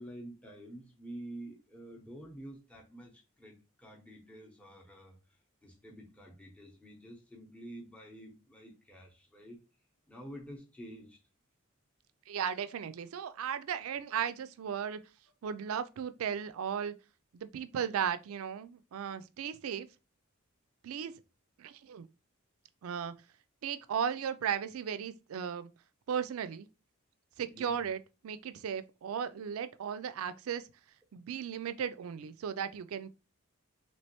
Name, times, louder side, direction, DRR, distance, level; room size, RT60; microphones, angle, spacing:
voice 1, 0.0-5.2 5.6-9.6 10.1-11.2 27.5-27.8, right 1 dB, 5° left, 0.7 m, -49 dB
voice 2, 12.3-15.0 15.4-16.9 17.3-19.9 20.8-21.1 21.6-22.0 22.8-23.1 23.6-25.7 26.1-26.7 27.4-30.6 31.1-33.1, right 7 dB, 75° right, 0.4 m, -36 dB
3.1 x 3.0 x 2.9 m
head